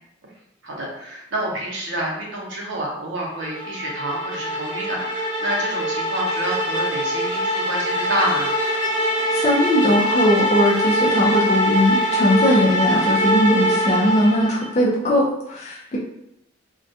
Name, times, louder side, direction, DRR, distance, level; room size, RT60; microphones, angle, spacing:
voice 1, 0.6-8.5, right 1 dB, 75° right, -2 dB, 0.7 m, -28 dB
sound 1, 3.4-14.7, equal, 15° right, 0.9 m, -22 dB
voice 2, 9.3-16.0, left 1 dB, 35° left, -5 dB, 0.4 m, -19 dB
2.3 x 2.2 x 2.6 m, 0.80 s
head